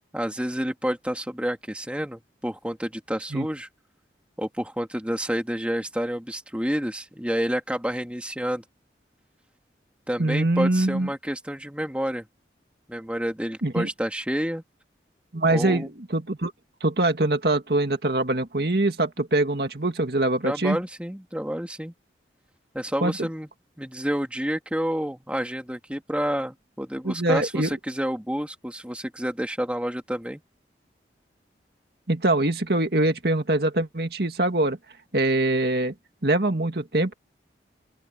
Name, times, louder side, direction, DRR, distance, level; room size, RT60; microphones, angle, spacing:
voice 1, 0.1-3.7 4.4-8.6 10.1-12.3 12.9-14.6 15.5-15.9 20.4-21.9 22.7-23.5 23.8-30.4, equal, 5° right, 2.2 m, -29 dB
voice 2, 10.2-11.1 13.6-13.9 15.3-16.5 16.8-20.8 23.0-23.3 27.0-27.7 32.1-34.8 35.1-35.9 36.2-37.1, right 2 dB, 60° right, 2.1 m, -23 dB
open air
head